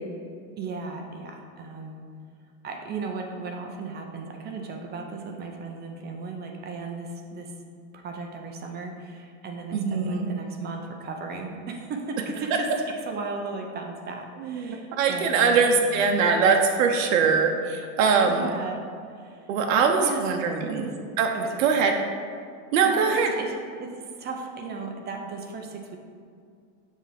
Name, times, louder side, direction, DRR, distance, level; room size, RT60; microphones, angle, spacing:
voice 1, 0.6-2.0 2.6-7.5 7.9-12.7 13.1-15.8 18.2-19.5 20.0-20.5 20.7-20.8 21.3-21.6 22.8-26.0, right 4 dB, 25° right, 3 dB, 0.6 m, -36 dB
voice 2, 9.7-10.3 14.4-18.5 19.5-20.9 21.2-21.3 21.6-22.0 22.7-23.3, right 5 dB, 80° right, 3 dB, 0.8 m, -22 dB
7.2 x 3.4 x 5.8 m, 2.3 s
supercardioid pair, 140°, 39 cm